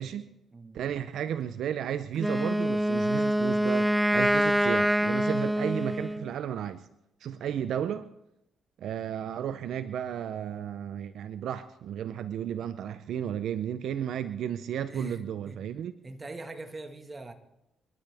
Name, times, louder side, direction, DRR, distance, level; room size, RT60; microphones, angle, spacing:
voice 1, 0.0-0.3 0.7-6.9 7.2-8.1 8.8-15.9, right 9 dB, 75° right, 0.6 m, -33 dB
Wind instrument woodwind instrument, 2.2-6.3, equal, 5° right, 0.6 m, -25 dB
voice 2, 14.9-15.6 16.0-17.3, right 2 dB, 25° right, 1.7 m, -42 dB
29.0 x 12.0 x 3.5 m
cardioid pair, 90°, 0 cm